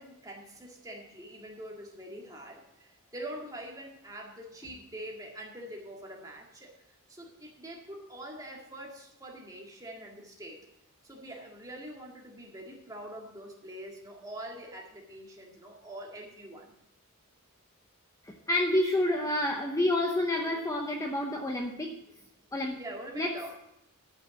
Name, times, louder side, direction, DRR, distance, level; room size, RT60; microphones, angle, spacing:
voice 1, 0.0-6.7 7.1-10.7 11.0-16.7 22.8-23.5, right 1 dB, 15° right, -1 dB, 1.9 m, -44 dB
voice 2, 18.2-21.9 22.5-22.8 23.1-23.3, left 1 dB, 15° left, 1 dB, 0.8 m, -29 dB
11.5 x 6.1 x 7.0 m, 0.82 s
head